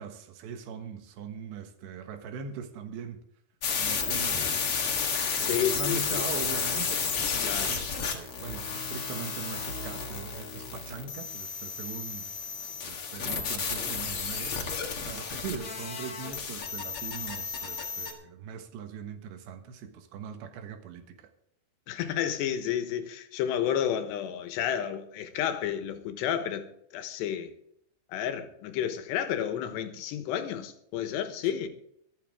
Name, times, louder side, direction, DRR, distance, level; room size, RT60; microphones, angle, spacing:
voice 1, 0.0-3.2 3.7-4.5 5.4-12.3 12.8-14.6 15.1-21.3, right 6 dB, 90° right, 3.7 m, -40 dB
sound 1, 3.6-18.1, left 6 dB, 50° left, 1.8 m, -32 dB
voice 2, 5.4-6.3 7.4-7.7 21.9-27.5 28.1-31.7, left 9 dB, 85° left, 3.3 m, -31 dB
24.5 x 8.4 x 3.6 m
omnidirectional pair, 4.8 m